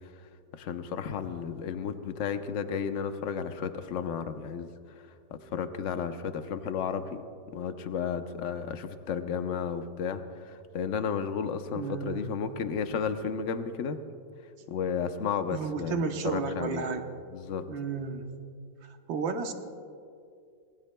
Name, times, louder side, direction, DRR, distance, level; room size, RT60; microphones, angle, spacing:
voice 1, 0.6-4.7 5.5-7.2 7.5-14.0 14.7-16.8 17.3-17.7, left 6 dB, 60° left, 8 dB, 0.8 m, -33 dB
voice 2, 11.7-12.3 15.5-17.1 17.7-18.3 18.8-19.5, right 5 dB, 75° right, 5 dB, 1.7 m, -33 dB
25.5 x 19.5 x 2.2 m, 2.3 s
omnidirectional pair, 2.1 m